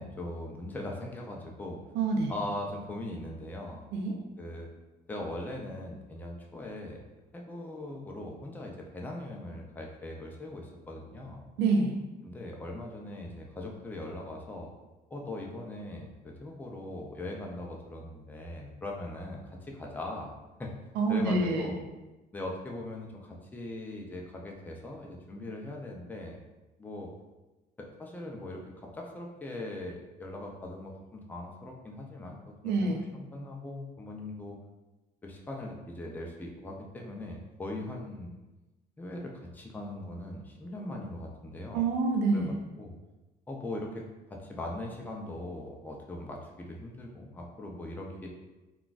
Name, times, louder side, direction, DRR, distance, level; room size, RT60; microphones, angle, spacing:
voice 1, 0.0-1.8 2.3-3.9 4.4-4.7 5.1-7.0 7.3-11.4 12.2-14.7 15.1-20.3 20.6-20.7 21.1-21.8 22.3-26.4 26.8-27.1 27.8-32.4 32.6-34.6 35.2-38.3 39.0-41.9 42.3-43.0 43.5-48.3, left 1 dB, 10° left, 0 dB, 0.4 m, -40 dB
voice 2, 1.9-2.3 3.9-4.2 11.6-12.0 21.0-21.7 32.6-33.0 41.7-42.6, right 3 dB, 90° right, 3 dB, 0.5 m, -27 dB
3.7 x 2.3 x 2.4 m, 1.1 s
cardioid pair, 110°, 17 cm